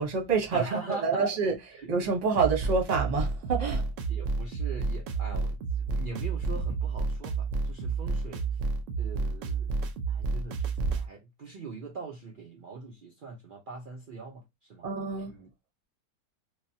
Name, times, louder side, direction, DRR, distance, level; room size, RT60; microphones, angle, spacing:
voice 1, 0.0-1.5 1.9-3.8 14.8-15.3, right 5 dB, 35° right, 0.8 m, -27 dB
voice 2, 0.5-1.4 1.7-1.9 4.1-5.6 5.9-8.4 9.0-9.7 10.1-15.5, right 3 dB, 80° right, 0.4 m, -41 dB
sound 1, 2.3-11.1, right 4 dB, 65° right, 0.9 m, -30 dB
3.3 x 2.2 x 2.6 m
omnidirectional pair, 1.6 m